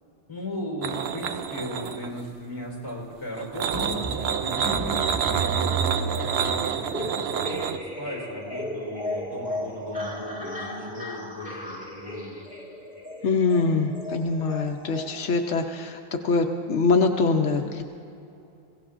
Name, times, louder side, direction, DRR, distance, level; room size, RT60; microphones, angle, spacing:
voice 1, 0.3-5.1 5.4-12.4, left 1 dB, 20° left, -1 dB, 3.6 m, -37 dB
sound 1, 0.8-2.3 3.4-7.8, right 7 dB, 70° right, 0.8 m, -28 dB
sound 2, 3.7-15.5, right 1 dB, 5° right, 1.8 m, -34 dB
voice 2, 13.2-17.8, left 4 dB, 85° left, 4 dB, 1.1 m, -24 dB
23.5 x 16.5 x 2.5 m, 2.7 s
omnidirectional pair, 1.2 m